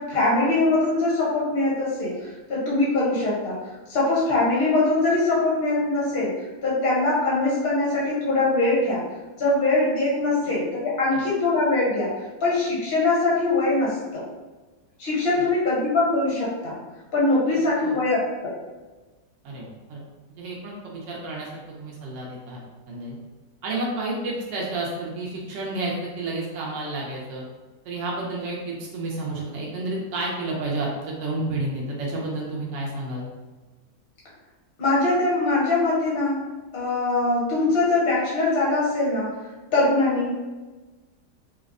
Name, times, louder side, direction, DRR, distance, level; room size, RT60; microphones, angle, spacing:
voice 1, 0.0-3.6 3.9-6.4 6.6-9.0 9.4-12.1 12.4-14.2 15.0-16.8 17.1-18.2 18.4-18.6 34.8-36.5 36.7-39.3 39.7-40.3, left 2 dB, 50° left, -6 dB, 0.8 m, -22 dB
voice 2, 17.5-18.0 19.4-20.0 20.4-22.6 22.9-23.2 23.6-27.4 27.8-33.3, right 2 dB, 70° right, -4 dB, 0.7 m, -31 dB
3.3 x 2.0 x 2.4 m, 1.2 s
omnidirectional pair, 1.8 m